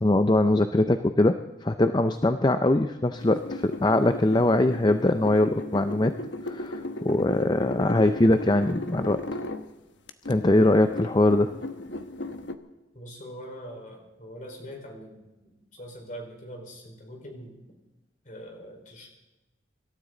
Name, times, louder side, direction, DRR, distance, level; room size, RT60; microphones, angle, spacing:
voice 1, 0.0-6.1 6.4-9.2 10.3-11.5, left 1 dB, 20° left, 9 dB, 0.5 m, -22 dB
sound 1, 3.2-9.7 10.1-12.5, left 1 dB, 70° left, 1.1 m, -36 dB
voice 2, 12.9-17.6 18.2-19.1, equal, 40° left, 1 dB, 4.5 m, -43 dB
25.5 x 13.0 x 3.9 m, 1.1 s
head